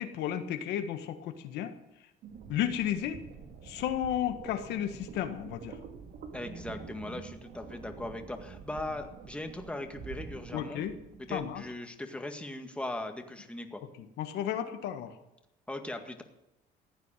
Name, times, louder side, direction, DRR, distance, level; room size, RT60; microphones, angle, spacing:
voice 1, 0.0-1.7 2.5-3.2 3.6-5.8 10.5-10.9 11.3-11.6 14.0-15.2, left 10 dB, 85° left, 7 dB, 1.6 m, -33 dB
sound 1, 2.2-11.6, right 5 dB, 70° right, 2.6 m, -47 dB
voice 2, 6.3-10.8 11.3-13.8 15.7-16.2, left 1 dB, 5° left, 5 dB, 1.9 m, -39 dB
15.5 x 9.4 x 9.1 m, 0.90 s
cardioid pair, 110°, 17 cm